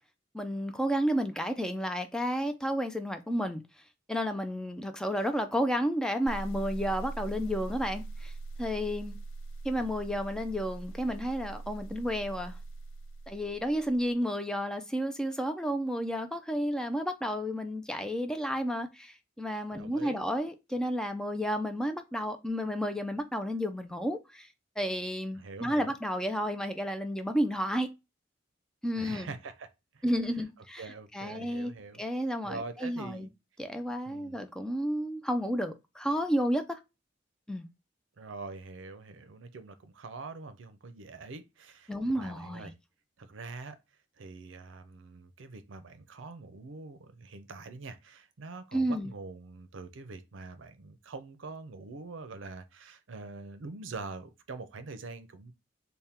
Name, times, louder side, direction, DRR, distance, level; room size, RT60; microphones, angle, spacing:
voice 1, 0.3-3.6 4.1-8.3 8.6-9.2 9.6-12.6 13.3-24.5 24.8-27.9 28.8-29.3 30.0-30.8 31.1-31.7 32.0-33.3 33.6-36.8 37.5-37.7 41.9-42.7 48.7-49.1, equal, 5° left, 0.4 m, -31 dB
sound 1, 6.3-14.1, right 3 dB, 85° left, 0.4 m, -41 dB
voice 2, 19.7-20.3 25.3-25.9 28.9-29.7 29.9-30.0 30.3-30.4 30.8-32.0 32.4-33.3 34.1-34.4 38.2-42.7 43.2-43.8 44.2-55.5, right 3 dB, 80° right, 0.5 m, -44 dB
3.5 x 2.1 x 4.2 m
head